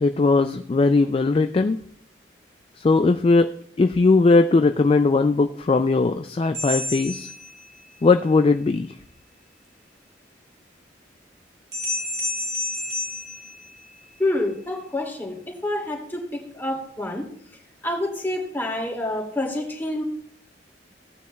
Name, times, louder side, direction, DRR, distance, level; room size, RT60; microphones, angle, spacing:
voice 1, 0.0-1.8 2.8-3.5 3.8-7.3 8.0-8.9, left 3 dB, 30° left, 9 dB, 0.3 m, -19 dB
sound 1, 6.5-8.1 11.7-14.2, left 1 dB, 65° right, 3.3 m, -30 dB
voice 2, 14.2-17.2 17.8-20.0, left 1 dB, 10° left, -2 dB, 2.4 m, -27 dB
16.5 x 9.3 x 2.3 m, 0.64 s
head